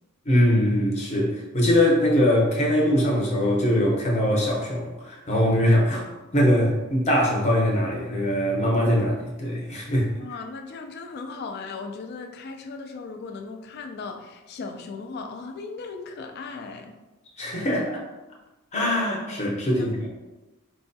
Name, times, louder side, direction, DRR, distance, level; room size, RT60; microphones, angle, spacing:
voice 1, 0.3-10.1 17.4-18.0 18.7-20.1, equal, 30° left, -3 dB, 0.7 m, -22 dB
voice 2, 10.1-16.9 19.3-19.4 19.7-20.1, left 4 dB, 45° left, 5 dB, 0.3 m, -37 dB
4.5 x 2.2 x 2.6 m, 1.1 s
head